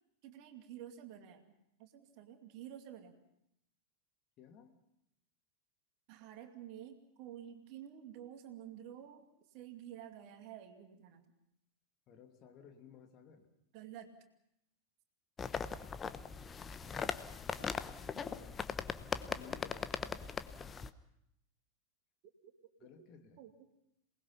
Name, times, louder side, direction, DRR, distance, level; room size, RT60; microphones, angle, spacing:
voice 1, 0.2-1.5 1.8-3.2 6.1-11.3 13.7-14.1 17.6-17.9 18.1-18.4 22.4-22.5 22.8-23.1 23.4-23.7, right 10 dB, 45° right, 5 dB, 2.4 m, -51 dB
voice 2, 4.4-4.8 12.1-13.5 16.8-17.1 18.1-18.9 19.3-19.9 20.6-20.7 22.8-23.4, left 7 dB, 35° left, 4 dB, 2.7 m, -56 dB
sound 1, 15.4-20.9, left 6 dB, 20° left, 0.9 m, -40 dB
27.5 x 20.0 x 5.8 m, 0.80 s
figure-of-eight pair, 90°, 0 cm